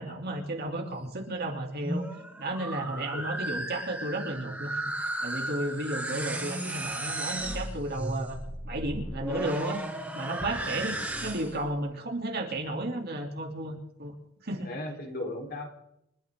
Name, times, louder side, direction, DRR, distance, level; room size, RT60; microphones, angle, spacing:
voice 1, 0.0-2.0 2.4-4.8 5.2-9.8 10.1-14.1 14.4-14.7, right 1 dB, 50° right, 1 dB, 3.2 m, -33 dB
sound 1, 1.7-11.7, right 1 dB, 5° right, 2.2 m, -35 dB
voice 2, 2.9-3.3 5.7-5.8 10.5-10.8 14.6-15.7, left 1 dB, 45° left, 2 dB, 4.2 m, -38 dB
29.0 x 13.0 x 3.9 m, 0.77 s
head